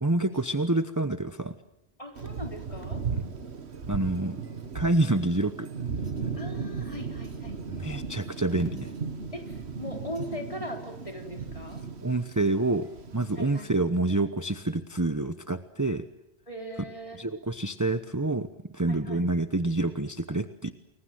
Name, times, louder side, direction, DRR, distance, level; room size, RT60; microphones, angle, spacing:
voice 1, 0.0-1.6 3.9-4.4 4.7-5.7 7.8-8.9 12.0-16.1 17.2-18.5 18.7-20.7, right 2 dB, 20° right, 10 dB, 1.0 m, -27 dB
voice 2, 2.0-3.0 6.3-7.6 9.3-11.8 13.4-13.7 16.5-17.2 18.9-19.3, equal, 30° left, 3 dB, 4.5 m, -40 dB
Thunder, 2.2-13.8, right 5 dB, 80° right, 1.8 m, -36 dB
30.0 x 22.5 x 7.7 m, 0.89 s
omnidirectional pair, 1.1 m